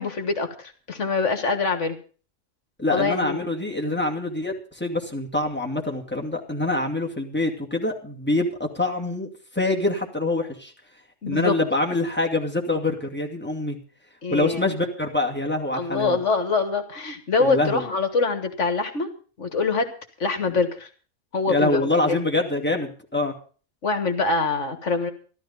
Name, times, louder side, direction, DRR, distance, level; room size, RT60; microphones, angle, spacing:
voice 1, 0.0-2.0 2.9-3.4 11.2-11.6 14.2-14.6 15.7-19.1 19.4-19.9 20.2-20.9 21.3-22.2 23.8-25.1, left 4 dB, 60° left, 8 dB, 1.8 m, -24 dB
voice 2, 2.8-9.3 9.5-10.7 11.3-13.8 14.3-16.2 17.4-17.9 21.5-23.3, left 2 dB, 10° left, 0 dB, 2.3 m, -25 dB
13.5 x 12.5 x 5.4 m, 0.39 s
omnidirectional pair, 1.4 m